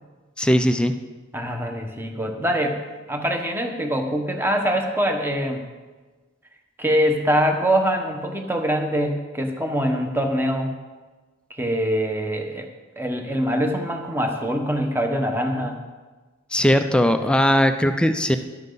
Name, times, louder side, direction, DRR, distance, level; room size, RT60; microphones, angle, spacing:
voice 1, 0.4-0.9 16.5-18.4, equal, 5° left, 8 dB, 0.4 m, -19 dB
voice 2, 1.3-2.8 3.1-5.6 6.8-10.7 11.6-12.7 13.0-15.8 17.2-17.3, equal, 10° right, 3 dB, 1.2 m, -23 dB
12.0 x 11.0 x 4.0 m, 1.3 s
head